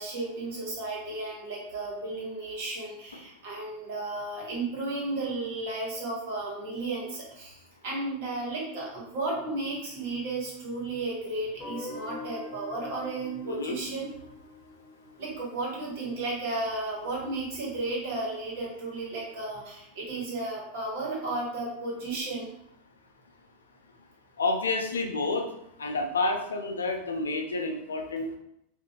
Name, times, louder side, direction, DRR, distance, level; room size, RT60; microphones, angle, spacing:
voice 1, 0.0-7.5 7.8-14.1 15.2-22.5, right 2 dB, 65° right, -4 dB, 1.3 m, -34 dB
Guitar, 11.6-16.5, left 2 dB, 40° left, 1.0 m, -44 dB
voice 2, 13.4-13.8 24.4-25.4 25.8-28.4, left 3 dB, 90° left, 4 dB, 0.4 m, -29 dB
2.5 x 2.5 x 2.8 m, 0.76 s
hypercardioid pair, 95°, 0 cm